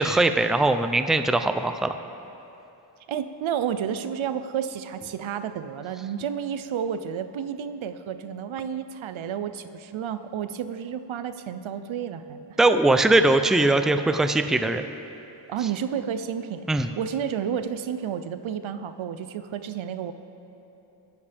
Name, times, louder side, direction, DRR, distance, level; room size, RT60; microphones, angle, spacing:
voice 1, 0.0-1.9 12.6-14.8 16.7-16.9, right 2 dB, ahead, 9 dB, 0.4 m, -21 dB
voice 2, 3.1-12.4 15.5-20.1, right 8 dB, 90° right, 11 dB, 0.7 m, -31 dB
24.0 x 10.0 x 3.5 m, 2.9 s
wide cardioid pair, 105°, 46 cm